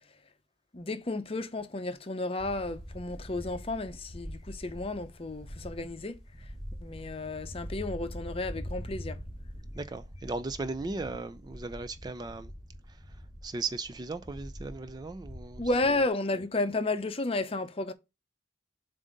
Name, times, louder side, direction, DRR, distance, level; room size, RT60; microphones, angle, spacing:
voice 1, 0.7-6.2 6.8-9.2 15.6-17.9, left 2 dB, 30° left, 0.6 m, -32 dB
sound 1, 2.4-16.1, equal, ahead, 1.7 m, -44 dB
voice 2, 9.7-12.5 12.9-13.0 13.4-15.6, right 3 dB, 20° right, 0.3 m, -37 dB
7.3 x 2.6 x 5.1 m
head